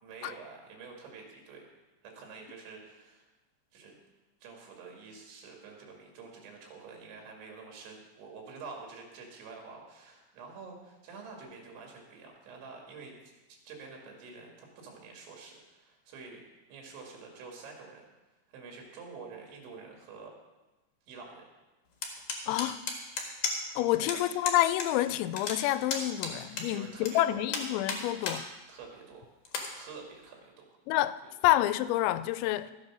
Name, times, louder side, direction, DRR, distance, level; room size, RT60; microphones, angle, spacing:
voice 1, 0.0-1.6 2.0-3.3 3.7-4.0 4.4-16.4 16.7-18.0 18.5-20.3 21.1-21.5 24.0-24.2 26.4-27.4 28.7-29.2 29.8-30.6 31.2-31.3, right 4 dB, 85° right, 4.4 m, -48 dB
sound 1, 22.0-23.8 24.1-24.2 24.4-24.9 25.1-27.1 27.5-28.4 28.8-28.9 29.4-29.7, left 5 dB, 55° left, 2.0 m, -34 dB
voice 2, 22.5-22.8 23.8-28.5 30.9-32.7, left 14 dB, 90° left, 2.9 m, -28 dB
14.0 x 8.1 x 6.1 m
omnidirectional pair, 5.2 m